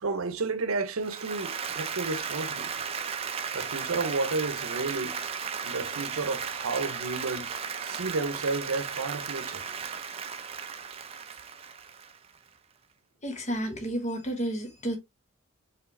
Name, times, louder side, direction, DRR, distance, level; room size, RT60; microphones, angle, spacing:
voice 1, 0.0-2.8 3.5-5.2 5.6-7.5 7.8-9.6, right 3 dB, 85° right, 0.7 m, -32 dB
Applause, 1.0-12.4, right 6 dB, 30° right, 0.5 m, -35 dB
voice 2, 13.2-15.0, right 1 dB, 35° left, 1.2 m, -31 dB
4.8 x 3.1 x 3.2 m
head